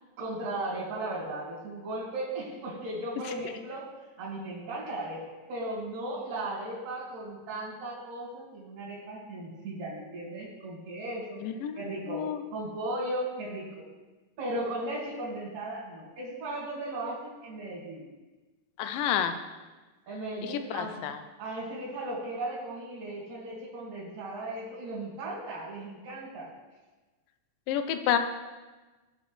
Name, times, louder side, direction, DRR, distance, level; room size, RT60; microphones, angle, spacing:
voice 1, 0.2-3.9 4.2-11.4 11.8-13.9 14.4-18.1 20.1-21.0 21.4-26.5, right 1 dB, 70° right, -8 dB, 4.1 m, -36 dB
voice 2, 11.4-11.8 12.1-12.4 18.8-19.4 20.4-21.2 27.7-28.2, left 9 dB, 80° left, 9 dB, 2.3 m, -29 dB
17.0 x 6.0 x 3.2 m, 1.2 s
omnidirectional pair, 4.0 m